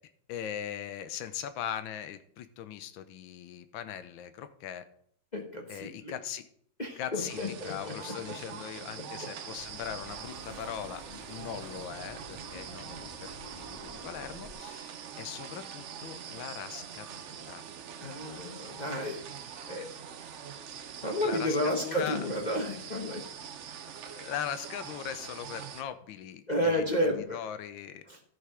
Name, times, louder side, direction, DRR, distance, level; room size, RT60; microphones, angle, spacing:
voice 1, 0.3-4.8 5.7-6.5 6.9-11.0 11.3-17.6 19.5-19.8 20.4-20.6 21.2-22.3 24.0-26.8 27.3-28.0, left 9 dB, 90° left, 11 dB, 1.5 m, -40 dB
voice 2, 5.3-6.1 6.8-7.9 18.0-19.3 19.7-19.9 21.0-23.2 26.5-27.4 28.1-28.2, left 1 dB, 30° left, 1 dB, 1.0 m, -31 dB
sound 1, 7.2-25.8, right 8 dB, 60° right, 0.7 m, -44 dB
sound 2, 9.5-14.5, equal, 25° right, 2.4 m, -50 dB
13.0 x 5.7 x 4.9 m, 0.64 s
omnidirectional pair, 2.1 m